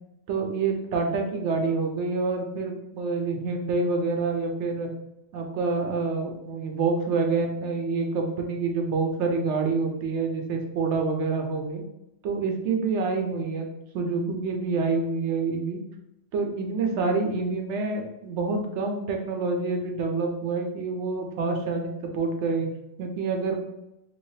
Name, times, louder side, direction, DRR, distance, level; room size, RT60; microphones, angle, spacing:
voice 1, 0.3-4.9 5.3-11.8 12.2-13.7 13.9-15.8 16.3-22.7 23.0-23.6, right 4 dB, 80° right, 3 dB, 0.9 m, -27 dB
3.2 x 3.0 x 2.7 m, 0.88 s
omnidirectional pair, 1.2 m